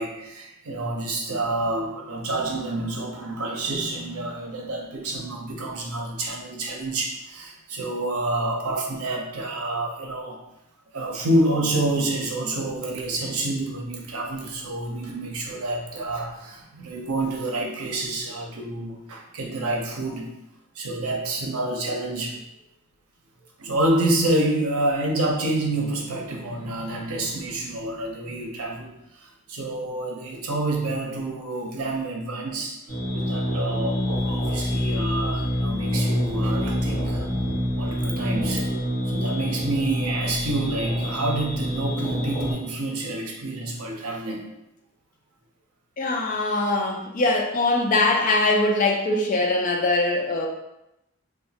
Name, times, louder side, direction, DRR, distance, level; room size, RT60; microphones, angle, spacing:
voice 1, 0.0-10.4 10.9-20.3 20.7-22.4 23.6-28.9 29.2-32.8 33.1-37.3 37.8-38.7 39.1-44.4, right 2 dB, 85° right, 0 dB, 0.6 m, -28 dB
sound 1, 32.9-42.5, equal, 15° left, 1.1 m, -26 dB
voice 2, 46.0-50.5, left 2 dB, 35° left, 1 dB, 0.4 m, -22 dB
3.1 x 2.2 x 2.8 m, 0.88 s
head